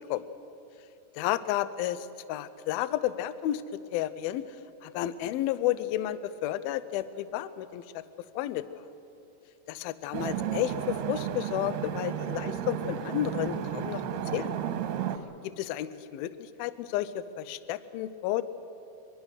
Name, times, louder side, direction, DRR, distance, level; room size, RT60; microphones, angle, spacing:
voice 1, 1.2-3.6 3.9-4.5 4.8-7.8 8.4-8.6 9.7-14.0 14.3-14.5 15.6-16.3 16.6-18.4, left 13 dB, 80° left, 14 dB, 2.2 m, -31 dB
sound 1, 10.1-15.2, right 10 dB, 75° right, 2.8 m, -33 dB
25.0 x 22.0 x 6.5 m, 2.7 s
omnidirectional pair, 5.1 m